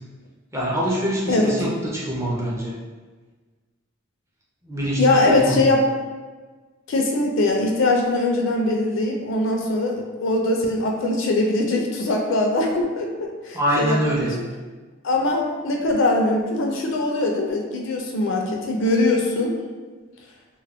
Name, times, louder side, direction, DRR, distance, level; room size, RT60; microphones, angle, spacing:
voice 1, 0.5-2.7 4.6-5.6 13.5-14.3, equal, 15° right, -5 dB, 0.4 m, -24 dB
voice 2, 5.0-5.8 6.9-13.1 13.4-14.3 15.0-19.5, left 2 dB, 60° left, 1 dB, 0.4 m, -21 dB
2.2 x 2.0 x 3.4 m, 1.3 s
head